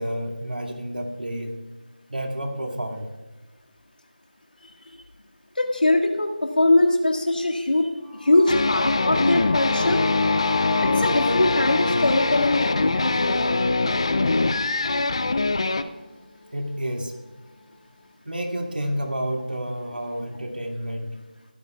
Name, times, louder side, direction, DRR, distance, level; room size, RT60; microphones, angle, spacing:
voice 1, 0.0-1.5 2.1-3.1 16.5-17.1 18.3-21.1, equal, 75° right, 2 dB, 2.3 m, -30 dB
voice 2, 5.6-7.9 8.2-10.0 10.8-13.6, left 2 dB, 65° left, 2 dB, 1.9 m, -22 dB
sound 1, 8.0-15.9, left 5 dB, 10° left, 1.5 m, -34 dB
sound 2, 8.5-15.8, left 3 dB, 35° left, 0.5 m, -23 dB
16.5 x 13.0 x 2.3 m, 1.2 s
figure-of-eight pair, 170°, 5 cm